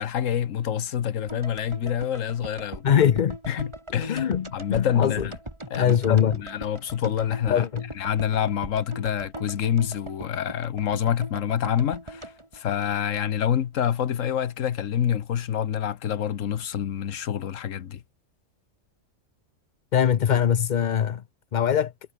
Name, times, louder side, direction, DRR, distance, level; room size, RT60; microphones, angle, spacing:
voice 1, 0.0-2.8 3.5-5.3 5.7-7.6 8.0-18.0, left 9 dB, 75° left, 1.3 m, -27 dB
sound 1, 1.3-13.5 13.7-13.8, right 1 dB, 20° right, 3.2 m, -41 dB
voice 2, 2.8-3.4 4.1-5.3 5.8-6.4 7.5-7.9 19.9-21.2 21.5-21.9, left 9 dB, 50° left, 0.6 m, -22 dB
omnidirectional pair, 1.4 m